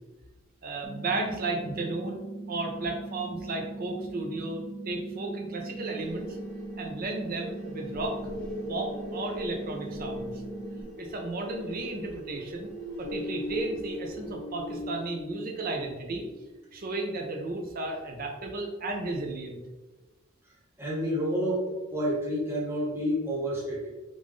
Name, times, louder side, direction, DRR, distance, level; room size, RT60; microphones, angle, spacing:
voice 1, 0.6-6.4 6.8-8.2 8.7-10.3 11.0-12.7 13.0-16.2 16.7-19.6, right 2 dB, 40° right, 2 dB, 0.6 m, -34 dB
sound 1, 0.8-10.8, right 3 dB, 10° left, 0.5 m, -40 dB
sound 2, 6.0-14.9, left 2 dB, 45° left, 1.2 m, -40 dB
sound 3, 11.3-16.9, left 1 dB, 75° right, 1.0 m, -41 dB
voice 2, 20.8-23.9, equal, 10° right, -7 dB, 1.1 m, -29 dB
3.5 x 2.5 x 3.2 m, 1.1 s
head